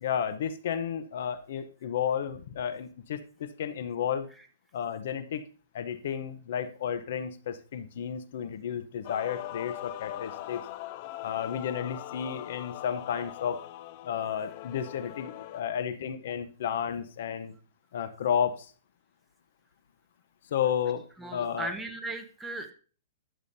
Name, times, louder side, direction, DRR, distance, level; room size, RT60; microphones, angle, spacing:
voice 1, 0.0-4.3 4.7-5.4 5.7-10.6 11.2-13.6 14.0-17.5 17.9-18.7 20.5-21.0 21.3-21.7, left 8 dB, 60° left, 13 dB, 0.7 m, -32 dB
Male singing / Female singing / Musical instrument, 9.0-15.6, left 15 dB, 40° left, 0.4 m, -41 dB
voice 2, 21.2-22.7, right 2 dB, 5° right, 4 dB, 0.9 m, -37 dB
12.0 x 7.1 x 2.7 m, 0.39 s
hypercardioid pair, 160°, 0 cm